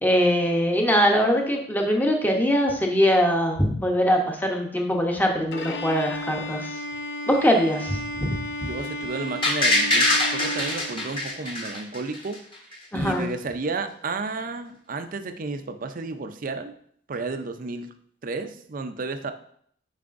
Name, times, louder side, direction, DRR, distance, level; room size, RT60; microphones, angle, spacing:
voice 1, 0.0-6.8 7.3-8.7 12.9-13.3, equal, 10° left, 1 dB, 0.8 m, -22 dB
Bowed string instrument, 5.5-11.4, equal, 70° left, 0.7 m, -34 dB
voice 2, 8.6-12.4 12.9-16.7 17.1-17.9 18.2-19.3, right 3 dB, 50° right, 8 dB, 0.5 m, -32 dB
sound 1, 9.4-12.4 12.7-12.8, left 1 dB, 30° left, 1.2 m, -23 dB
9.4 x 4.8 x 2.5 m, 0.64 s
head